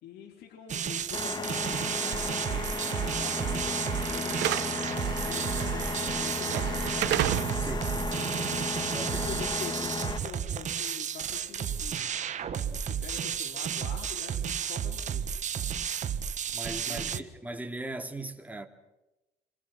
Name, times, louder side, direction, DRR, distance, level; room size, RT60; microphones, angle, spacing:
voice 1, 0.0-7.3 9.0-15.3 16.9-17.2, left 7 dB, 75° left, 4.5 m, -45 dB
sound 1, 0.7-17.2, right 8 dB, 45° right, 1.6 m, -32 dB
sound 2, 1.1-10.2, left 3 dB, 25° left, 2.6 m, -34 dB
Slam / Alarm, 1.6-9.7, right 15 dB, 75° right, 1.0 m, -35 dB
voice 2, 7.6-8.1 8.9-9.2 16.5-18.7, right 2 dB, 10° right, 2.9 m, -39 dB
28.5 x 25.0 x 6.0 m
cardioid pair, 110°, 17 cm